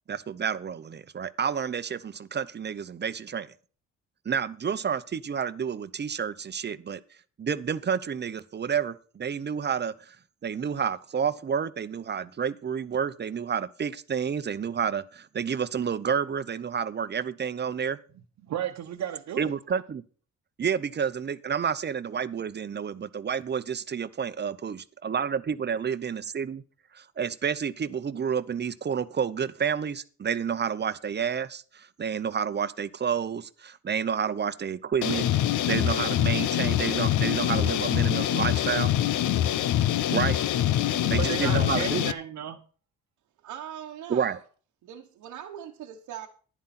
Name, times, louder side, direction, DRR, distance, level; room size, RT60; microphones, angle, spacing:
voice 1, 0.1-3.5 4.2-7.0 7.4-10.2 10.4-18.0 19.4-20.0 20.6-26.6 26.9-35.3 35.7-38.9 40.1-40.4 41.1-42.1 44.1-44.4, right 7 dB, 35° right, 0.8 m, -30 dB
voice 2, 18.4-19.5 40.8-42.6, right 10 dB, 65° right, 1.1 m, -33 dB
sound 1, 35.0-42.1, left 12 dB, 75° left, 0.7 m, -25 dB
voice 3, 43.4-44.4 44.8-46.3, right 10 dB, 85° right, 1.2 m, -40 dB
11.5 x 10.0 x 4.3 m
cardioid pair, 90°, 30 cm